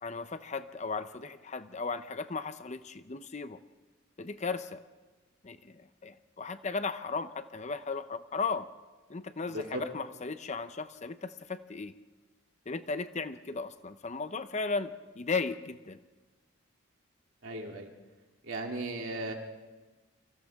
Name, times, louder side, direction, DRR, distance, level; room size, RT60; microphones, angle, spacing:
voice 1, 0.0-3.6 4.2-4.8 5.4-8.7 9.1-11.9 12.7-16.0, left 4 dB, 35° left, 10 dB, 0.7 m, -36 dB
voice 2, 9.5-9.8 17.4-17.9 18.4-19.3, right 1 dB, 70° right, 1 dB, 2.9 m, -36 dB
29.5 x 25.5 x 3.6 m, 1.3 s
head